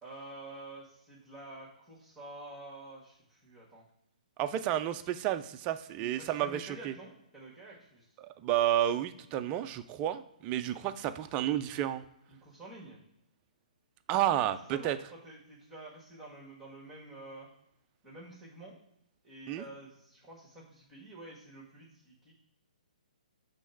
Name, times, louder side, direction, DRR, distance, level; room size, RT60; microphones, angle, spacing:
voice 1, 0.0-3.8 5.9-8.0 12.3-13.0 14.4-17.5 18.0-18.8 19.2-22.3, right 2 dB, 5° right, -5 dB, 1.6 m, -49 dB
voice 2, 4.4-6.9 8.2-12.0 14.1-15.0 19.5-19.6, right 12 dB, 25° right, 10 dB, 0.4 m, -31 dB
6.2 x 3.3 x 5.7 m, 0.81 s
figure-of-eight pair, 135°, 5 cm